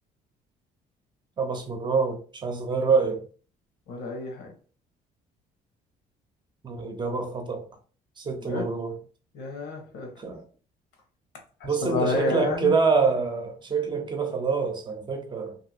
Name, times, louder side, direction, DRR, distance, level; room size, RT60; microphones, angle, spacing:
voice 1, 1.4-3.3 6.6-7.7 8.2-9.0 10.2-10.5 11.6-15.6, right 5 dB, 25° right, 0.8 m, -26 dB
voice 2, 3.9-4.5 8.4-8.7 9.3-10.1 11.6-12.7, left 3 dB, 85° left, 1.2 m, -29 dB
2.8 x 2.7 x 2.8 m
cardioid pair, 110°, 17 cm